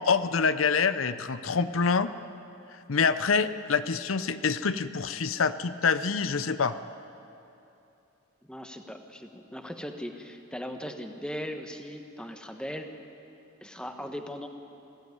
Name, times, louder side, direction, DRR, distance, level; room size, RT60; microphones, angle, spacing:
voice 1, 0.0-2.1 2.9-6.7, left 5 dB, 90° left, 13 dB, 0.7 m, -26 dB
voice 2, 8.4-12.9 13.6-14.5, equal, 5° left, 5 dB, 1.2 m, -38 dB
20.5 x 16.0 x 9.5 m, 2.9 s
head